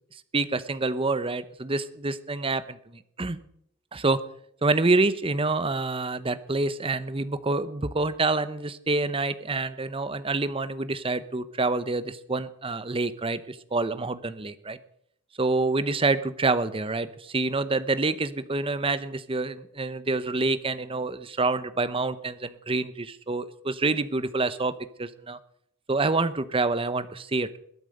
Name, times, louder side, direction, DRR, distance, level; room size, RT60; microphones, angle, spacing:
voice 1, 0.3-3.4 3.9-4.2 4.6-14.8 15.4-25.4 25.9-27.6, right 3 dB, 25° right, 14 dB, 0.8 m, -27 dB
21.0 x 8.8 x 6.6 m, 0.70 s
head